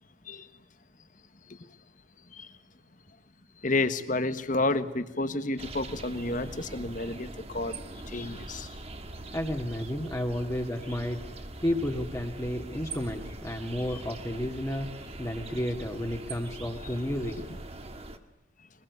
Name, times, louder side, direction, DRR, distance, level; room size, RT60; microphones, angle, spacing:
voice 1, 3.6-7.8 8.1-8.8, left 2 dB, 40° left, 1.5 m, -30 dB
sound 1, 5.6-18.2, right 2 dB, 30° right, 1.7 m, -42 dB
voice 2, 9.3-11.2 11.6-17.4, left 1 dB, 15° left, 2.2 m, -32 dB
23.5 x 21.5 x 9.5 m
head